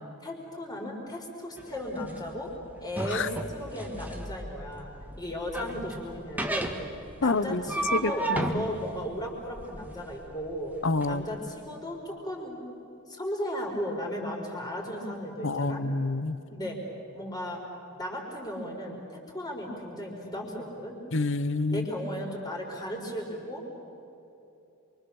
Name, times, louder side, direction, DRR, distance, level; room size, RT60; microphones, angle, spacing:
voice 1, 0.2-2.5 2.8-4.9 5.2-6.7 7.2-10.7 11.1-12.6 13.1-15.8 16.5-16.8 17.1-17.6 18.0-21.0 21.7-23.6, equal, 20° left, 0 dB, 4.7 m, -35 dB
sound 1, 1.6-11.1, right 1 dB, 5° right, 1.6 m, -35 dB
voice 2, 7.2-7.6 7.9-8.6 10.8-11.3 15.4-16.4 21.1-21.9, left 3 dB, 55° left, 14 dB, 1.0 m, -28 dB
28.5 x 24.5 x 7.2 m, 2.9 s
head